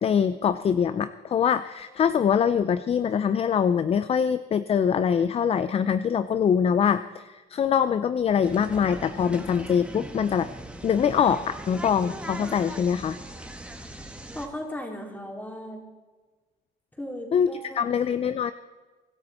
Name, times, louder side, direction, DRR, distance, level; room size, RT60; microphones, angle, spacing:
voice 1, 0.0-10.5 10.8-13.2 17.3-17.5 17.8-18.5, left 7 dB, 35° left, 13 dB, 0.6 m, -23 dB
sound 1, 8.4-14.5, right 1 dB, 5° right, 1.8 m, -40 dB
voice 2, 14.3-15.8 17.0-17.9, equal, 10° left, 1 dB, 3.8 m, -36 dB
24.5 x 12.0 x 4.3 m, 1.3 s
cardioid pair, 110°, 17 cm